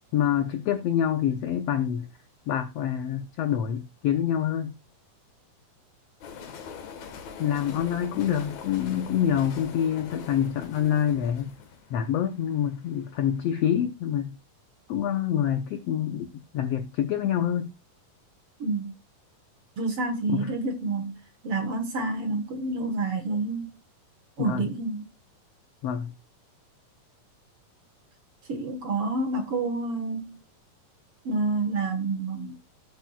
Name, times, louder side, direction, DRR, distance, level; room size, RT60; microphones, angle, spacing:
voice 1, 0.1-2.1 2.5-4.8 7.4-11.6 11.9-14.4 14.9-17.7 20.3-20.5 24.4-24.7 25.8-26.1, left 9 dB, 80° left, 1.4 m, -26 dB
sound 1, 6.2-13.2, left 6 dB, 60° left, 2.5 m, -43 dB
voice 2, 18.6-18.9 19.8-23.8 24.4-25.1 28.5-30.4 31.2-32.5, right 3 dB, 55° right, 1.8 m, -29 dB
14.5 x 8.9 x 2.3 m
omnidirectional pair, 3.8 m